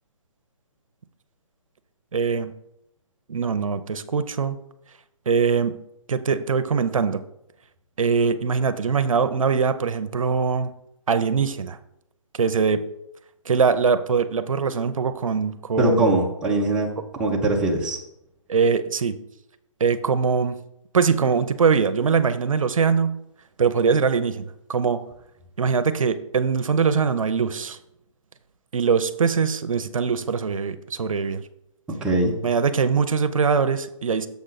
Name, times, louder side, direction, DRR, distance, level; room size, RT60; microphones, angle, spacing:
voice 1, 2.1-2.5 3.3-4.6 5.3-5.8 6.1-7.2 8.0-10.7 11.1-11.8 12.4-12.9 13.5-16.2 17.0-17.1 18.5-19.2 19.8-20.6 20.9-23.2 23.6-25.1 25.6-27.8 28.7-31.4 32.4-34.3, right 5 dB, 80° right, 11 dB, 0.6 m, -22 dB
voice 2, 15.8-16.9 17.2-18.0 32.0-32.3, right 1 dB, 5° right, -3 dB, 0.6 m, -21 dB
7.0 x 6.2 x 3.9 m, 0.83 s
hypercardioid pair, 155°, 17 cm